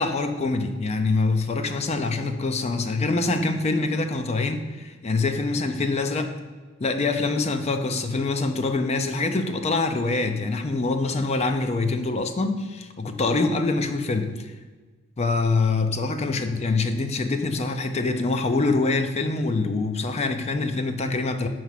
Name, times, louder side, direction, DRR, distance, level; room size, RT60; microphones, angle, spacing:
voice 1, 0.0-6.4 6.8-14.5 15.2-21.5, left 3 dB, 30° left, 7 dB, 0.5 m, -25 dB
4.7 x 4.6 x 5.6 m, 1.4 s
head